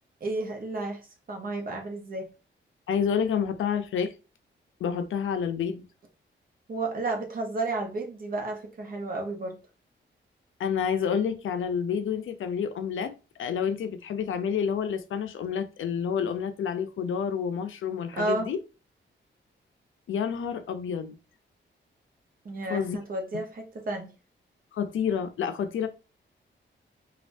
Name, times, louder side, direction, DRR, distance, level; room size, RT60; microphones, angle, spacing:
voice 1, 0.2-1.0 1.3-2.3 6.7-9.6 18.1-18.5 22.4-24.1, right 2 dB, 45° right, 0.8 m, -32 dB
voice 2, 2.9-4.1 4.8-5.8 10.6-13.1 13.4-18.6 20.1-21.2 22.7-23.0 24.7-25.9, left 7 dB, 85° left, 0.5 m, -29 dB
3.3 x 2.3 x 2.5 m
wide cardioid pair, 145°, 20 cm